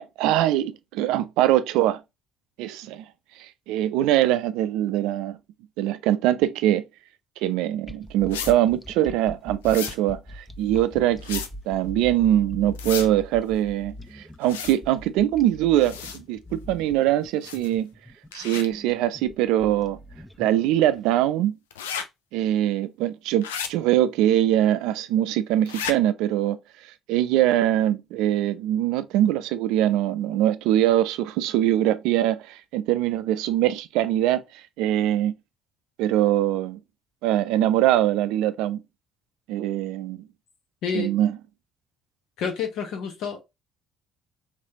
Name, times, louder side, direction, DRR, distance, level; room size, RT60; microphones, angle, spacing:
voice 1, 0.0-2.0 2.6-3.0 3.4-5.4 5.8-6.8 7.4-17.9 18.3-20.0 20.4-21.5 22.3-26.6 26.8-35.3 36.0-36.8 37.2-38.8 39.5-40.2 40.9-41.4, right 12 dB, 75° right, 0.3 m, -23 dB
sound 1, 7.8-20.9, equal, 5° left, 0.5 m, -42 dB
sound 2, 8.3-8.5 9.6-10.0 11.2-11.5 12.7-13.1 14.4-14.8 15.8-16.2 17.4-17.7 18.3-18.6 21.7-22.0 23.4-23.7 25.7-25.9, left 7 dB, 90° left, 0.4 m, -33 dB
voice 2, 40.8-41.1 42.4-43.4, left 6 dB, 70° left, 1.0 m, -29 dB
3.3 x 3.2 x 2.7 m
hypercardioid pair, 55°, 0 cm